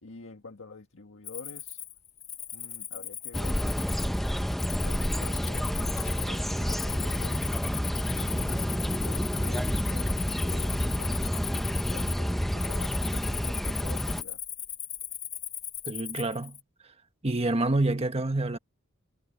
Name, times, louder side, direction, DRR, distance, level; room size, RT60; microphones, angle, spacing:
voice 1, 0.0-1.8 2.5-3.6 4.7-7.4 8.1-11.2 11.9-14.4, left 3 dB, 60° left, 1.7 m, -47 dB
Cricket, 1.2-16.6, left 10 dB, 30° left, 1.2 m, -38 dB
sound 1, 3.3-14.2, equal, ahead, 0.8 m, -29 dB
Rattle / Car / Engine starting, 5.4-5.5 5.9-6.3 6.6-14.3, left 1 dB, 75° left, 5.0 m, -44 dB
voice 2, 15.8-16.6 16.8-16.9 17.2-18.6, right 2 dB, 25° right, 1.4 m, -27 dB
head